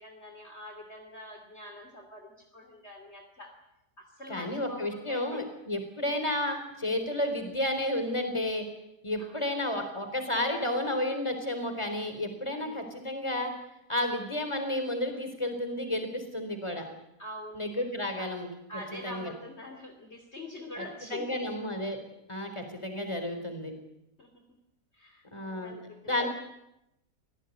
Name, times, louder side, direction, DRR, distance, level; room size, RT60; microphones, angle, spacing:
voice 1, 0.0-3.5 4.0-5.4 9.2-9.5 12.4-13.0 17.2-17.7 18.2-18.3 18.7-21.5 24.2-24.4 24.9-26.3, left 1 dB, 40° left, 4 dB, 3.0 m, -45 dB
voice 2, 4.3-8.7 9.0-13.5 13.9-16.8 17.6-18.5 19.0-19.3 20.8-20.9 21.1-22.0 22.3-23.7 25.3-25.7 26.0-26.3, left 1 dB, 15° left, 6 dB, 4.1 m, -31 dB
25.0 x 17.5 x 9.5 m, 0.87 s
omnidirectional pair, 1.7 m